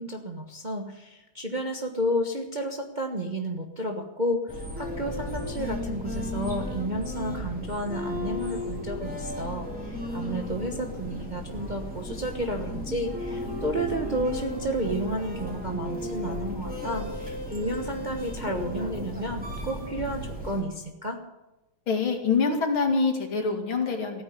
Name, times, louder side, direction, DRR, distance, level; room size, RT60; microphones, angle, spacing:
voice 1, 0.0-21.2, equal, 25° right, 3 dB, 1.1 m, -31 dB
sound 1, 4.5-20.6, left 1 dB, 5° right, 3.6 m, -34 dB
voice 2, 21.9-24.2, left 4 dB, 75° left, 3 dB, 3.1 m, -25 dB
16.0 x 9.7 x 9.6 m, 0.97 s
omnidirectional pair, 2.3 m